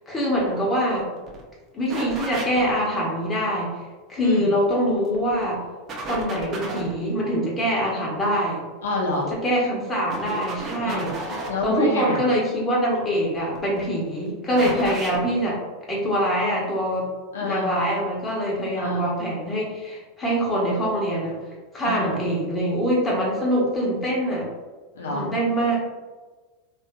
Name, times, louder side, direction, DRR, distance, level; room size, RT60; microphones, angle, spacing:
voice 1, 0.1-1.1 1.7-3.7 4.1-5.6 6.0-8.6 9.3-11.1 11.6-15.6 15.9-17.1 17.4-21.4 21.7-24.5 25.1-25.8, equal, 20° left, -4 dB, 1.1 m, -24 dB
sound 1, 1.0-1.1 1.3-1.4 1.9-2.7 4.9-5.4 5.9-7.0 9.1-9.5 10.1-11.7 13.4-13.8 14.6-15.2, right 2 dB, 35° right, 0.7 m, -33 dB
voice 2, 4.2-4.5 8.8-9.3 10.8-12.2 14.5-14.8 17.3-17.7 18.8-19.0 21.8-22.1 25.0-25.3, left 2 dB, 80° left, -2 dB, 0.6 m, -28 dB
2.9 x 2.5 x 2.2 m, 1.3 s
hypercardioid pair, 90°, 0 cm